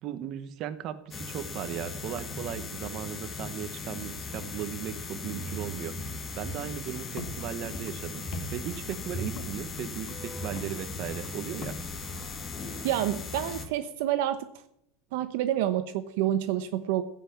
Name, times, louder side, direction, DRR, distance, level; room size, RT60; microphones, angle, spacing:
voice 1, 0.0-8.2 8.5-11.8 15.1-15.2, right 10 dB, 40° right, 10 dB, 1.1 m, -37 dB
sound 1, 1.1-13.7, left 3 dB, 20° left, 1.6 m, -38 dB
sound 2, 6.7-12.4, left 5 dB, 45° left, 1.8 m, -46 dB
voice 2, 12.8-14.5 15.1-17.0, right 12 dB, 70° right, 10 dB, 0.9 m, -28 dB
16.0 x 5.8 x 8.5 m, 0.75 s
supercardioid pair, 150°, 0 cm